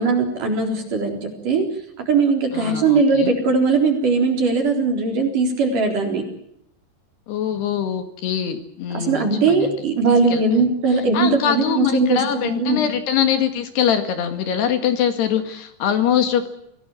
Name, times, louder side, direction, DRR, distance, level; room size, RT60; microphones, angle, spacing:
voice 1, 0.0-1.7 2.1-6.2 8.9-12.8, right 4 dB, 45° right, 2 dB, 5.2 m, -19 dB
voice 2, 2.5-3.3 7.3-9.8 10.3-10.4 11.1-16.5, left 9 dB, 65° left, 8 dB, 3.7 m, -23 dB
25.0 x 18.0 x 9.0 m, 0.76 s
omnidirectional pair, 5.3 m